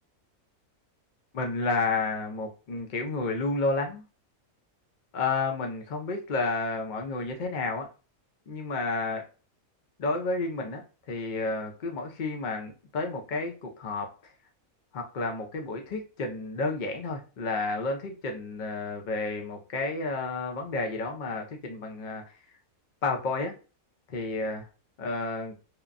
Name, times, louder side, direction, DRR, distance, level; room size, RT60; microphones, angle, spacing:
voice 1, 1.3-4.0 5.1-7.9 8.5-9.3 10.0-14.1 14.9-22.2 23.0-23.5 24.1-24.7 25.0-25.6, left 3 dB, 60° left, 3 dB, 0.5 m, -31 dB
2.9 x 2.1 x 2.4 m, 0.33 s
omnidirectional pair, 1.5 m